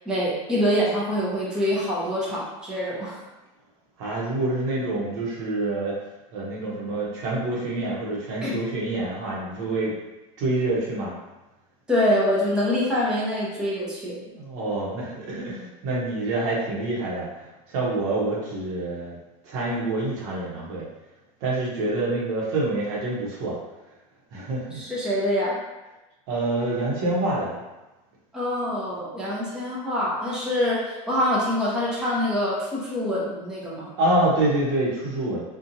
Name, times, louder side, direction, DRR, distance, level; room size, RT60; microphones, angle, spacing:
voice 1, 0.1-3.2 8.4-8.6 11.9-14.2 24.7-25.6 28.3-33.9, left 1 dB, 5° right, -8 dB, 0.8 m, -25 dB
voice 2, 4.0-6.0 6.3-9.9 10.4-11.1 14.1-19.2 19.4-20.8 21.4-23.6 24.3-24.8 26.3-27.6 34.0-35.4, right 2 dB, 65° right, -5 dB, 1.0 m, -27 dB
2.7 x 2.4 x 2.7 m, 1.1 s
supercardioid pair, 125°, 18 cm